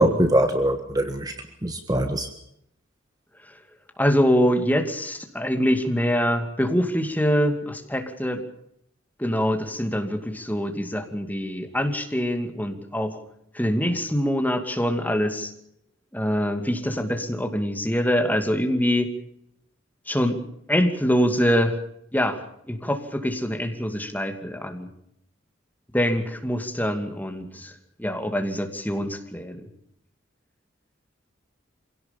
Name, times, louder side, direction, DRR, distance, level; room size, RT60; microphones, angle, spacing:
voice 1, 0.0-1.3 1.6-2.3, right 1 dB, 20° right, 7 dB, 1.5 m, -22 dB
voice 2, 4.0-8.4 9.2-13.2 13.5-15.5 16.1-19.1 20.1-20.4 20.7-21.8 22.1-24.9 25.9-29.6, equal, 10° left, 5 dB, 2.5 m, -24 dB
26.0 x 17.5 x 7.1 m, 0.74 s
head